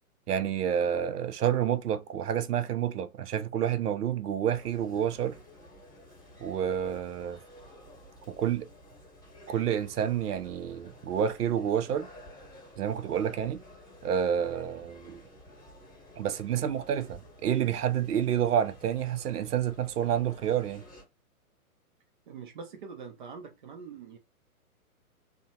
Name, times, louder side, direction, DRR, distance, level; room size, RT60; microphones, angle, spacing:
voice 1, 0.3-5.4 6.4-7.4 8.3-8.7 9.5-12.1 12.8-13.6 14.0-15.2 16.2-20.8, right 9 dB, 90° right, 0.5 m, -29 dB
sound 1, 4.5-21.0, left 1 dB, 10° left, 0.9 m, -52 dB
voice 2, 22.3-24.2, right 5 dB, 35° right, 0.4 m, -44 dB
2.7 x 2.1 x 2.7 m
hypercardioid pair, 120°, 45 cm